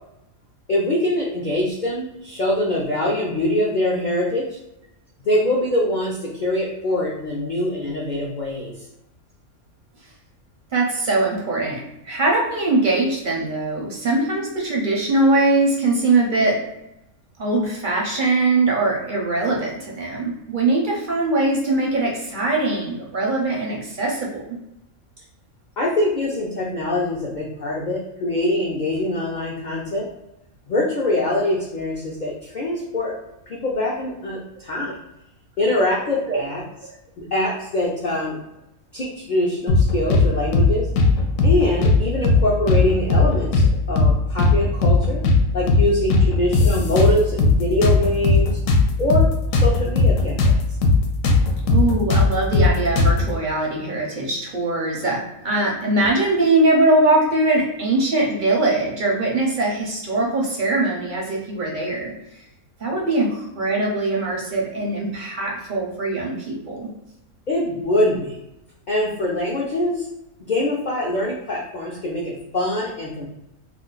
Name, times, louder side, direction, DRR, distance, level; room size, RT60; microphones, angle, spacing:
voice 1, 0.7-4.5 5.2-8.7 25.8-30.1 30.7-33.1 33.5-34.9 35.6-36.6 37.2-38.4 38.9-40.9 41.4-45.2 45.5-48.6 49.0-49.3 49.5-50.5 67.5-68.3 68.9-70.0 70.4-73.2, left 1 dB, 55° left, -4 dB, 0.5 m, -23 dB
voice 2, 10.7-16.6 17.4-24.6 34.8-34.9 36.3-36.5 36.8-37.0 51.7-62.1 62.8-66.9, right 2 dB, 55° right, -2 dB, 0.6 m, -21 dB
sound 1, 39.7-40.3 40.5-40.7 41.0-42.0 42.2-42.4 42.7-43.7 44.0-44.1 44.4-45.4 45.7-45.8 46.1-47.6 47.8-50.6 50.8-51.0 51.2-53.3, left 3 dB, 75° left, 0.9 m, -16 dB
2.5 x 2.3 x 3.7 m, 0.87 s
omnidirectional pair, 1.4 m